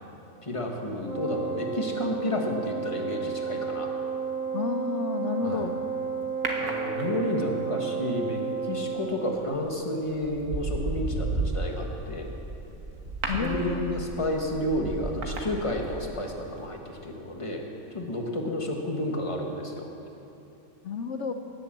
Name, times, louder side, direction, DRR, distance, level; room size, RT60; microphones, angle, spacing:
voice 1, 0.4-3.9 5.4-5.7 6.6-12.3 13.3-17.6 17.9-19.9, left 1 dB, 25° left, 1 dB, 1.4 m, -31 dB
Wind instrument woodwind instrument, 1.0-9.2, right 6 dB, 30° right, 1.6 m, -32 dB
voice 2, 4.5-5.8 13.3-14.0 20.8-21.3, left 5 dB, 65° left, 7 dB, 0.9 m, -31 dB
sound 1, 6.4-7.5 9.3-9.6 10.1-16.3 16.6-16.7, right 2 dB, 75° right, 1.8 m, -33 dB
18.0 x 7.6 x 7.3 m, 2.9 s
omnidirectional pair, 1.4 m